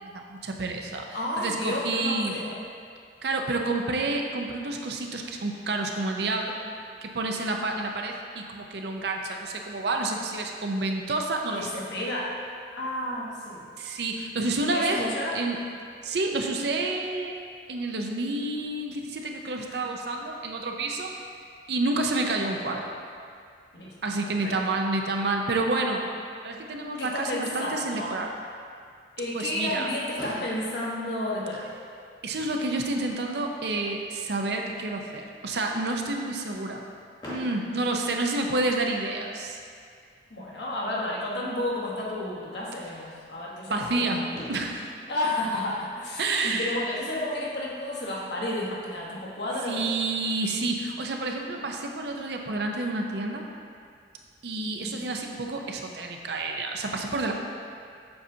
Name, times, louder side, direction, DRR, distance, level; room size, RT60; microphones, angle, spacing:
voice 1, 0.0-2.4 3.2-6.6 7.0-11.7 13.8-15.0 15.3-15.6 16.0-17.3 17.7-21.1 21.7-22.9 24.0-26.0 26.4-28.3 29.3-29.9 32.2-36.8 37.2-39.6 43.7-44.9 46.2-46.8 49.7-53.4 54.4-57.3, right 2 dB, 65° right, 2 dB, 0.6 m, -29 dB
voice 2, 1.1-2.6 11.6-12.4 12.8-13.7 14.6-15.4 19.7-19.8 23.7-24.1 24.4-24.5 27.0-28.2 29.2-31.7 40.3-44.2 45.1-49.8 54.8-55.1, left 1 dB, 70° left, -4 dB, 1.2 m, -31 dB
Fireworks, 30.2-32.2 33.0-33.1 33.3-33.5 33.8-33.9 37.2-39.0 40.7-40.8 43.9-44.0 44.3-46.6, equal, 25° left, 1.1 m, -43 dB
7.7 x 5.7 x 2.7 m, 2.3 s
head